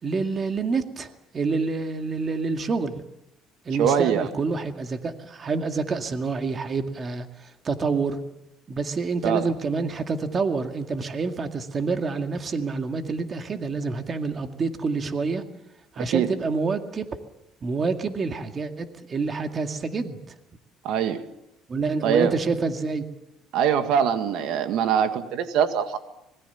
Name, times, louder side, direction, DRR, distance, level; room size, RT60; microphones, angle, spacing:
voice 1, 0.0-3.0 3.7-8.2 8.7-15.4 15.9-17.1 17.6-20.2 21.7-23.1, right 4 dB, 30° right, 6 dB, 2.1 m, -27 dB
voice 2, 3.8-4.3 9.2-9.4 16.1-16.3 20.8-21.3 22.0-22.3 23.5-26.0, right 8 dB, 70° right, 8 dB, 1.8 m, -23 dB
25.5 x 21.0 x 7.0 m, 0.89 s
cardioid pair, 130°, 0 cm